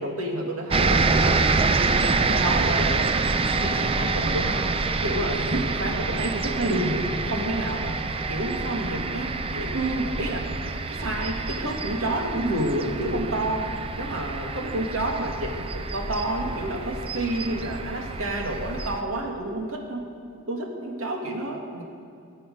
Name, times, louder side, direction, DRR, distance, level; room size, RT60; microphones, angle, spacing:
voice 1, 0.0-1.5 2.2-3.0 3.6-4.7 5.0-8.0 8.3-10.5 10.9-13.7 13.9-20.0 20.5-21.8, right 1 dB, 90° right, 1 dB, 2.1 m, -29 dB
sound 1, 0.7-19.0, right 3 dB, 25° right, 0.5 m, -27 dB
20.5 x 7.7 x 5.4 m, 2.4 s
head